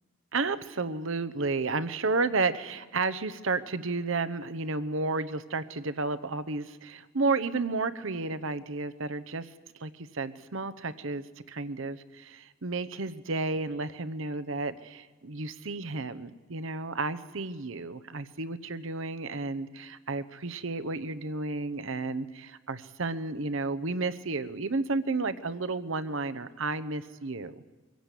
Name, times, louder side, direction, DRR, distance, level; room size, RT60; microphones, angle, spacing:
voice 1, 0.3-9.5 9.8-27.6, right 3 dB, 65° right, 12 dB, 0.9 m, -32 dB
24.0 x 16.5 x 8.3 m, 1.3 s
head